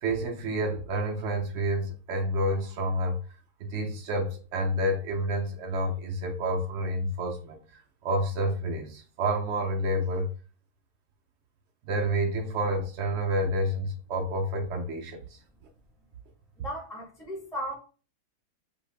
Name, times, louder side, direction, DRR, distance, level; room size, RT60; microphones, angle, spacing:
voice 1, 0.0-3.2 3.6-7.6 8.0-10.3 11.9-15.2, right 1 dB, 65° right, 1 dB, 0.8 m, -29 dB
voice 2, 16.6-17.7, equal, 5° left, -2 dB, 0.5 m, -36 dB
2.6 x 2.3 x 3.2 m, 0.38 s
omnidirectional pair, 1.4 m